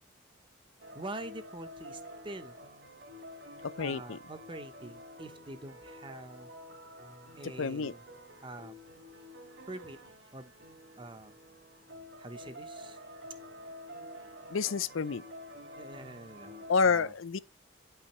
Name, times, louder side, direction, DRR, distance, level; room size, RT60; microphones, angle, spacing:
sound 1, 0.8-16.8, equal, 55° right, 2.0 m, -49 dB
voice 1, 0.9-2.6 3.8-6.5 7.3-8.0 8.4-8.8 9.7-10.0 10.3-10.5 11.0-11.4 12.2-13.0 15.7-17.1, right 2 dB, 25° right, 0.8 m, -45 dB
voice 2, 3.6-4.2 7.6-7.9 14.5-15.2 16.7-17.4, left 5 dB, 80° left, 0.6 m, -29 dB
9.5 x 5.7 x 3.0 m
head